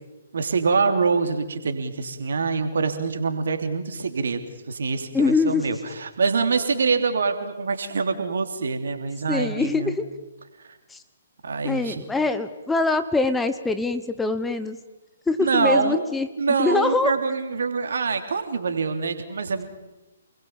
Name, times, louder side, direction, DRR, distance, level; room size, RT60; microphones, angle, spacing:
voice 1, 0.3-10.0 10.6-10.8 11.4-12.0 15.4-16.0 16.4-19.6, right 4 dB, 60° right, 7 dB, 3.2 m, -25 dB
voice 2, 5.1-5.7 9.3-10.1 10.9-11.0 11.6-14.8 15.3-16.3 16.6-17.1, left 3 dB, 5° left, 10 dB, 1.1 m, -23 dB
29.0 x 21.5 x 7.4 m, 1.1 s
figure-of-eight pair, 130°, 0 cm